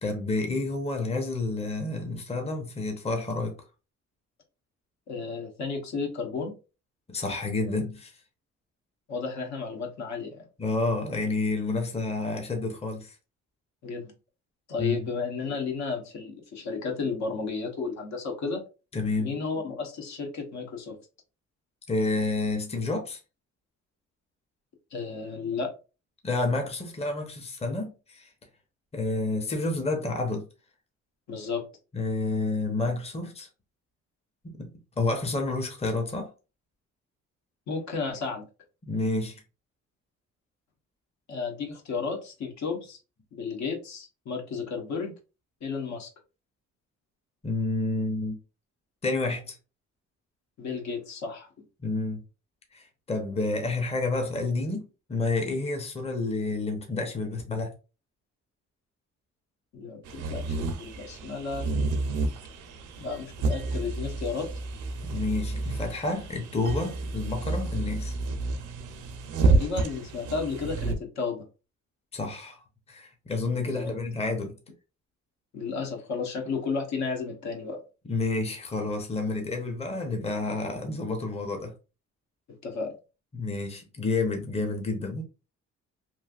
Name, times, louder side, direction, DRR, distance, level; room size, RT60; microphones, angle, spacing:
voice 1, 0.0-3.5 7.1-8.1 10.6-13.2 14.8-15.1 18.9-19.4 21.9-23.2 26.2-28.3 28.9-30.4 31.9-33.5 34.4-34.7 35.0-36.3 38.8-39.4 47.4-48.4 49.0-49.6 51.8-52.2 52.7-57.7 65.0-68.1 72.1-72.6 72.9-74.6 78.1-81.7 83.3-85.2, left 3 dB, 20° left, 0.8 m, -29 dB
voice 2, 5.1-6.6 9.1-10.4 13.8-14.1 14.7-18.6 19.2-21.0 24.9-25.7 31.3-31.6 37.7-38.5 41.3-43.0 43.3-45.1 45.6-46.1 50.6-51.5 59.7-61.7 63.0-64.5 69.4-71.5 73.6-74.0 75.5-77.8 82.6-82.9, left 4 dB, 65° left, 1.0 m, -33 dB
sound 1, 60.0-70.9, right 3 dB, 80° right, 0.6 m, -30 dB
3.1 x 2.6 x 2.4 m
cardioid pair, 90°, 30 cm